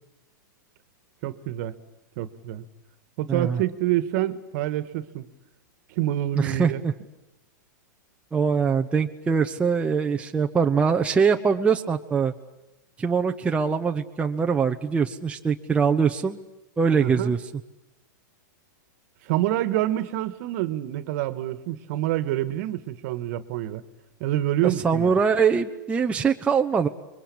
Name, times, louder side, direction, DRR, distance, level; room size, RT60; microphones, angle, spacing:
voice 1, 1.2-1.7 2.2-2.7 3.2-5.3 5.9-6.8 17.0-17.3 19.2-23.8 24.2-25.1, right 14 dB, 50° right, 13 dB, 1.6 m, -27 dB
voice 2, 3.3-3.6 6.4-6.9 8.3-12.3 13.0-16.4 16.8-17.4 24.6-26.9, right 6 dB, 10° right, 3 dB, 0.9 m, -23 dB
26.5 x 22.5 x 8.7 m, 0.93 s
hypercardioid pair, 135°, 11 cm